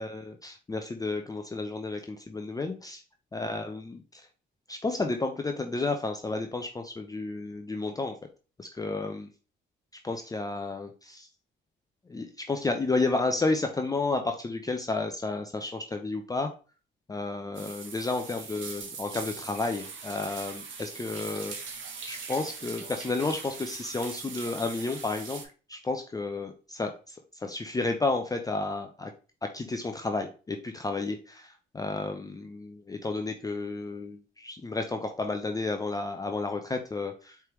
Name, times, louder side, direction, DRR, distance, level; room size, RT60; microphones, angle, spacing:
voice 1, 0.0-3.0 3.3-4.3 4.7-8.2 8.6-9.3 10.0-11.3 12.1-16.5 17.1-29.1 29.5-37.4, left 3 dB, 20° left, 5 dB, 0.5 m, -32 dB
sound 1, 17.5-25.4, right 5 dB, 75° right, 1.1 m, -41 dB
4.6 x 3.4 x 3.0 m, 0.35 s
cardioid pair, 90°, 20 cm